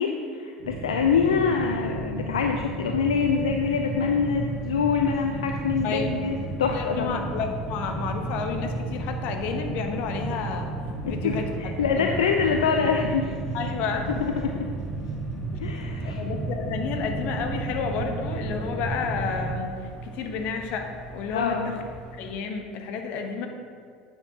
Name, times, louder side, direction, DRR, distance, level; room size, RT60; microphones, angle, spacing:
voice 1, 0.0-7.2 11.1-13.3 14.2-14.5 15.6-16.2 21.3-21.8, left 6 dB, 80° left, 3 dB, 0.5 m, -25 dB
sound 1, 0.6-19.6, right 3 dB, 65° right, 1.7 m, -33 dB
sound 2, 3.1-22.3, right 1 dB, 30° left, 0.8 m, -43 dB
voice 2, 5.8-6.3 6.6-10.7 11.0-12.3 13.5-14.2 15.5-15.6 16.0-19.7 20.0-20.8 21.1-21.8 22.1-23.5, left 5 dB, 60° left, 4 dB, 1.1 m, -31 dB
9.7 x 7.3 x 2.9 m, 2.2 s
hypercardioid pair, 75°, 3 cm